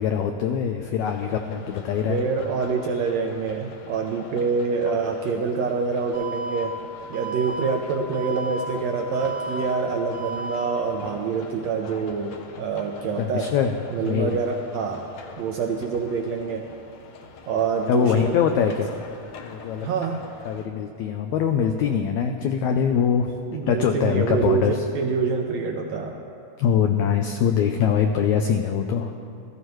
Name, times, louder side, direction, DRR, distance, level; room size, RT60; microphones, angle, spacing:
voice 1, 0.0-2.2 13.2-14.4 17.9-18.9 19.4-19.9 20.4-23.3 23.7-24.8 26.6-29.1, left 8 dB, 85° left, 5 dB, 1.6 m, -23 dB
sound 1, 1.0-20.7, left 5 dB, 65° left, 1.9 m, -44 dB
voice 2, 2.1-6.8 7.1-13.5 13.9-15.1 15.4-16.7 17.5-18.3 19.8-20.2 23.5-26.2, right 5 dB, 80° right, 2 dB, 1.6 m, -26 dB
Alarm, 6.1-6.6 7.1-7.6 8.1-8.6 9.1-9.6 10.1-10.6, right 2 dB, 60° right, 1.1 m, -33 dB
16.0 x 14.0 x 3.1 m, 2.6 s
omnidirectional pair, 3.9 m